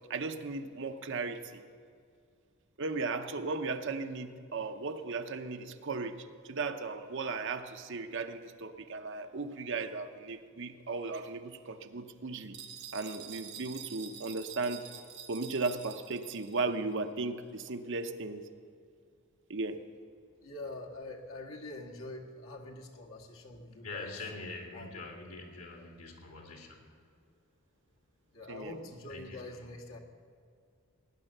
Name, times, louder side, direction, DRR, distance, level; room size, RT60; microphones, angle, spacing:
voice 1, 0.1-1.6 2.8-12.6 12.9-14.8 15.3-18.5 19.5-19.8 28.5-28.8, right 3 dB, 55° right, 7 dB, 0.8 m, -36 dB
sound 1, 12.5-16.7, right 8 dB, 90° right, 1.3 m, -48 dB
voice 2, 20.4-24.1 24.7-25.0 28.3-30.0, left 2 dB, 65° left, -1 dB, 1.8 m, -45 dB
voice 3, 23.8-26.9 29.1-29.8, left 3 dB, 80° left, 0 dB, 3.0 m, -44 dB
18.0 x 9.9 x 6.7 m, 2.2 s
head